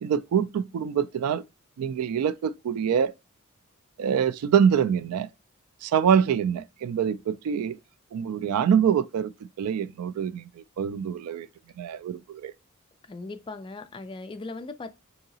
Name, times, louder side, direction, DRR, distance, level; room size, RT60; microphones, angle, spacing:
voice 1, 0.0-1.4 1.8-3.1 4.0-5.3 5.8-7.8 8.1-9.3 9.6-11.5 11.8-12.5, right 8 dB, 85° right, 0.3 m, -25 dB
voice 2, 13.1-14.9, left 3 dB, 25° left, 0.3 m, -38 dB
3.8 x 2.8 x 2.7 m
head